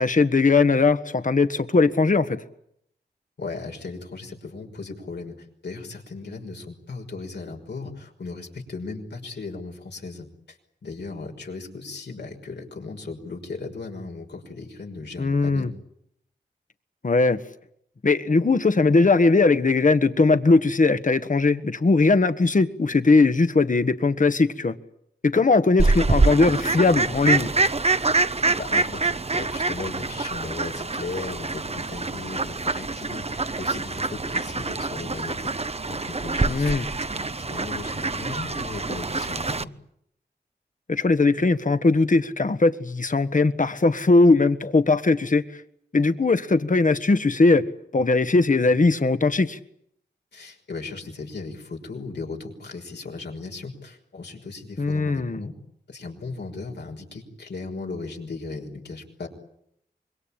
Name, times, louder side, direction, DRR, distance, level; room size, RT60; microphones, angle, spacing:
voice 1, 0.0-2.4 15.2-15.7 17.0-17.4 18.0-24.8 25.2-27.5 36.5-36.8 40.9-45.4 45.9-47.6 47.9-49.6 54.8-55.4, left 3 dB, 50° left, 11 dB, 1.6 m, -19 dB
voice 2, 3.4-5.3 5.6-10.6 10.8-15.7 28.6-36.8 37.1-39.7 50.3-55.5 55.9-59.3, left 3 dB, 85° left, 1 dB, 5.7 m, -37 dB
Fowl, 25.8-39.6, right 3 dB, 40° right, 1.0 m, -25 dB
25.5 x 22.0 x 8.9 m, 0.72 s
cardioid pair, 45°, 17 cm